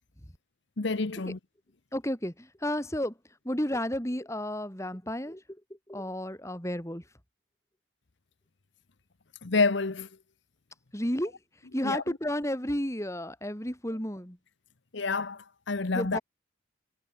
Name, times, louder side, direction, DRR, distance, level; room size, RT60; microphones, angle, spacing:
voice 1, 0.8-1.4 9.4-10.1 11.8-12.0 14.9-16.2, left 3 dB, 60° left, 0.9 m, -28 dB
voice 2, 1.9-3.1 3.4-5.4 5.9-7.0 10.9-11.4 11.7-14.4 15.9-16.2, left 1 dB, 15° left, 3.1 m, -32 dB
head